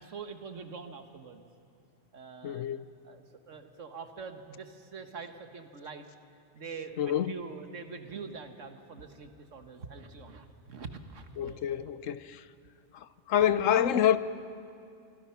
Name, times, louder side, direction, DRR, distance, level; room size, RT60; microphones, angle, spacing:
voice 1, 0.0-1.4 2.1-2.7 3.0-6.1 6.5-11.9 13.4-13.5, right 5 dB, 75° right, 1.7 m, -44 dB
voice 2, 2.4-2.9 7.0-7.3 11.4-12.4 12.9-14.2, left 10 dB, 85° left, 1.1 m, -27 dB
25.5 x 24.0 x 5.8 m
omnidirectional pair, 1.3 m